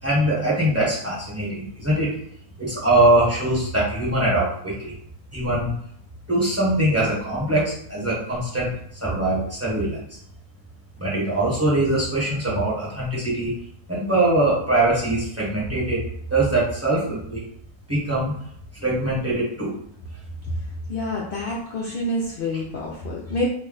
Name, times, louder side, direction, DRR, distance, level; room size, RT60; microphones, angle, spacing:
voice 1, 0.0-2.2 2.6-4.9 5.3-5.7 6.3-10.0 11.0-13.5 13.9-16.0 16.3-17.4 17.9-18.3 18.8-19.7, right 1 dB, 10° right, -6 dB, 0.9 m, -22 dB
voice 2, 20.9-23.5, left 1 dB, 80° left, -5 dB, 0.4 m, -27 dB
2.7 x 2.2 x 3.8 m, 0.69 s
omnidirectional pair, 1.6 m